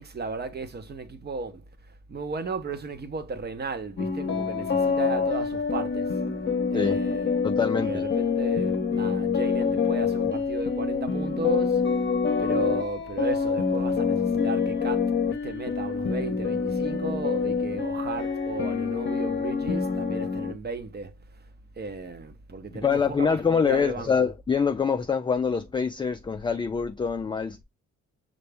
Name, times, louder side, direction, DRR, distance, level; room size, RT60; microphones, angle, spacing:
voice 1, 0.0-1.6 2.1-6.1 6.7-7.3 7.7-11.8 12.4-21.1 21.8-24.3, right 3 dB, 35° right, 1.0 m, -35 dB
sound 1, 4.0-20.5, left 5 dB, 40° left, 0.9 m, -26 dB
voice 2, 7.4-8.1 22.7-27.6, left 6 dB, 15° left, 0.4 m, -25 dB
5.6 x 2.6 x 3.4 m
cardioid pair, 90°, 30 cm